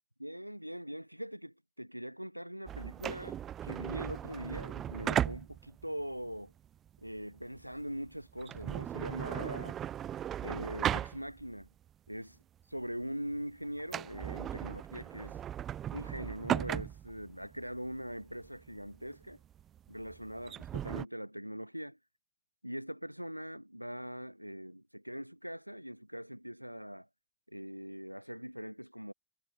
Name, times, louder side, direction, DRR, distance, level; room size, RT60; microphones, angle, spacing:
voice 1, 0.2-6.5 7.0-9.8 10.4-11.7 12.1-12.4 12.7-15.4 15.9-19.4 19.9-22.0 22.6-27.1 27.5-29.1, equal, 90° right, 0.8 m, -42 dB
sound 1, 2.7-11.7 12.1-12.2 12.8-13.0 13.3-13.4 13.8-21.1, right 10 dB, 30° right, 1.1 m, -37 dB
figure-of-eight pair, 90°, 0 cm